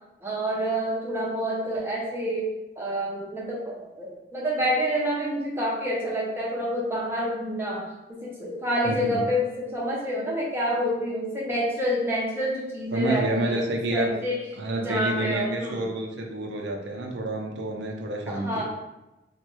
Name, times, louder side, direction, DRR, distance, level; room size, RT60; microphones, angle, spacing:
voice 1, 0.2-14.5 14.8-15.9 18.3-18.6, equal, 15° right, -5 dB, 0.7 m, -28 dB
voice 2, 8.8-9.2 12.9-14.1 14.6-18.6, right 1 dB, 80° right, 1 dB, 0.5 m, -28 dB
3.0 x 2.2 x 3.0 m, 0.97 s
head